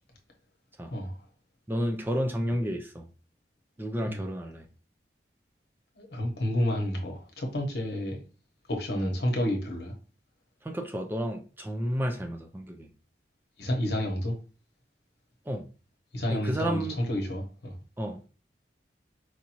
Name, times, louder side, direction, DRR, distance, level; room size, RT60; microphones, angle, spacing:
voice 1, 1.7-3.0 3.8-4.7 9.0-9.1 10.6-12.9 15.5-15.7 16.3-17.0 18.0-18.3, equal, 10° right, 0.4 m, -31 dB
voice 2, 6.0-8.2 8.7-9.9 13.6-14.4 16.1-17.7, left 1 dB, 65° left, 1.0 m, -30 dB
4.7 x 2.6 x 2.9 m
head